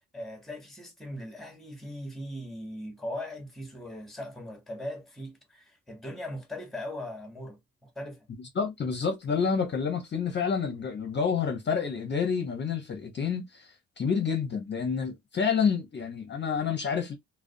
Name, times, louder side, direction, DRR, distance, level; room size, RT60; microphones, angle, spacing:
voice 1, 0.1-8.3, left 1 dB, ahead, 0.8 m, -39 dB
voice 2, 8.5-17.1, left 6 dB, 35° left, 0.6 m, -29 dB
2.4 x 2.1 x 2.5 m
cardioid pair, 90°, 30 cm